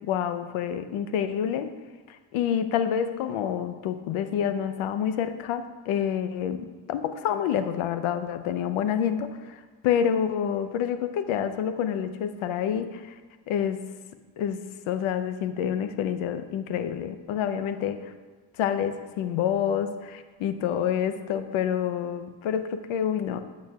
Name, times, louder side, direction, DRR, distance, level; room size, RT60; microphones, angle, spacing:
voice 1, 0.0-1.7 2.1-13.1 13.5-13.8 14.4-14.6 14.9-18.1 18.6-23.4, left 9 dB, 80° left, 10 dB, 0.7 m, -28 dB
9.0 x 8.3 x 2.3 m, 1.4 s
cardioid pair, 80°, 47 cm